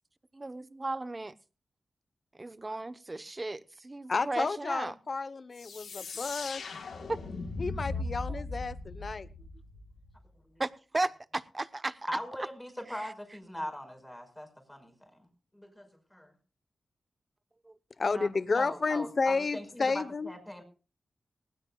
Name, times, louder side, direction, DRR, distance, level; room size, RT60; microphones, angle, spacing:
voice 1, 0.3-1.3 2.4-4.9 7.1-7.2 7.9-8.0 8.3-8.4 10.6-12.1 17.6-17.7 18.0-18.3, right 2 dB, 30° right, 14 dB, 0.9 m, -35 dB
voice 2, 4.1-6.6 7.6-9.3 18.0-20.3, left 4 dB, 55° left, 15 dB, 1.0 m, -31 dB
sound 1, 5.5-10.1, left 3 dB, 85° left, 4.1 m, -38 dB
voice 3, 12.1-14.9 15.5-16.3 18.5-20.6, equal, 10° left, 5 dB, 5.2 m, -40 dB
19.5 x 18.0 x 2.3 m, 0.35 s
cardioid pair, 70°, 0 cm